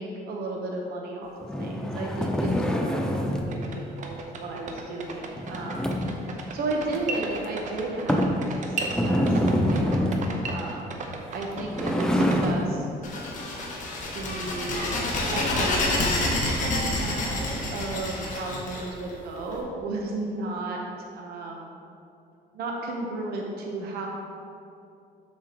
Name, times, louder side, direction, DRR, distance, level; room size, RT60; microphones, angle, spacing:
voice 1, 0.0-6.0 6.3-11.1 11.3-13.1 14.1-15.0 15.3-20.8 21.2-21.8 22.5-24.1, right 2 dB, 65° right, 0 dB, 1.0 m, -34 dB
sound 1, 1.4-3.6 5.4-6.2 6.9-7.0 7.4-7.5 8.1-8.4 8.9-10.4 11.4-12.7, equal, 5° left, 0.6 m, -25 dB
sound 2, 3.2-3.3 3.5-12.5, right 4 dB, 45° right, 0.8 m, -35 dB
sound 3, 13.0-19.5, left 2 dB, 50° left, 1.4 m, -28 dB
7.2 x 6.7 x 3.0 m, 2.6 s
cardioid pair, 110°, 17 cm